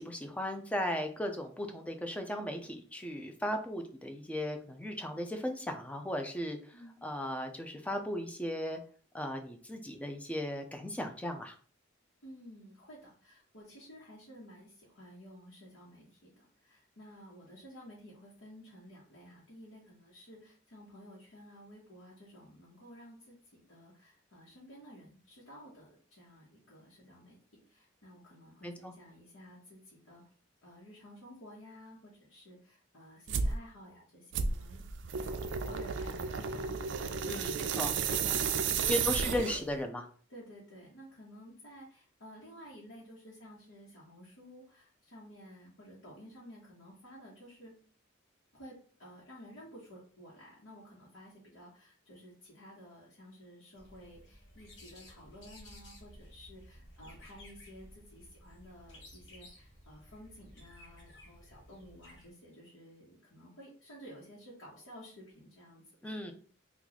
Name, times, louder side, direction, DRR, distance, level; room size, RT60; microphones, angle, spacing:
voice 1, 0.0-6.6 7.0-8.8 9.1-11.5 28.6-28.9 37.3-37.9 38.9-40.1 66.0-66.3, equal, 5° left, 4 dB, 0.4 m, -36 dB
voice 2, 12.2-30.2 30.6-34.9 35.2-38.8 39.1-39.2 40.3-47.8 48.5-66.3, equal, 85° left, -7 dB, 1.0 m, -53 dB
sound 1, 33.3-33.6 34.3-39.8, right 6 dB, 60° right, 0.3 m, -33 dB
sound 2, 53.7-62.3, left 1 dB, 60° left, 1.2 m, -55 dB
3.0 x 2.3 x 3.9 m, 0.44 s
head